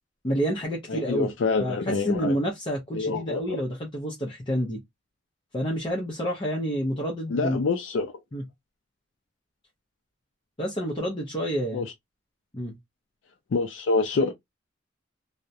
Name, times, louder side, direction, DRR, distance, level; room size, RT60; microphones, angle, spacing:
voice 1, 0.2-1.3 1.6-4.8 5.5-7.6 8.3-8.4 10.6-11.9 12.5-12.8, equal, 25° left, 0.6 m, -29 dB
voice 2, 0.9-2.4 2.9-3.6 7.3-8.1 11.7-11.9 13.5-14.3, left 4 dB, 80° left, 0.4 m, -26 dB
2.3 x 2.0 x 2.6 m
head